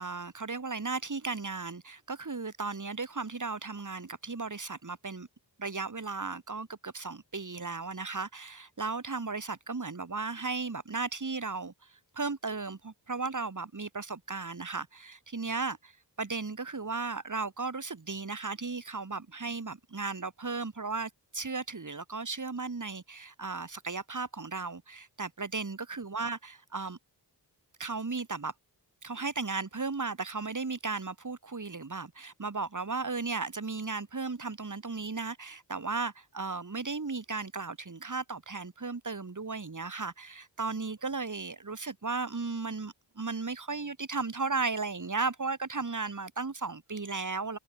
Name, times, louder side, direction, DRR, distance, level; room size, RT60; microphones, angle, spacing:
voice 1, 0.0-5.3 5.6-15.9 16.2-27.0 27.8-28.5 29.0-47.6, right 4 dB, 45° right, 2.7 m, -35 dB
wide cardioid pair, 55°, 43 cm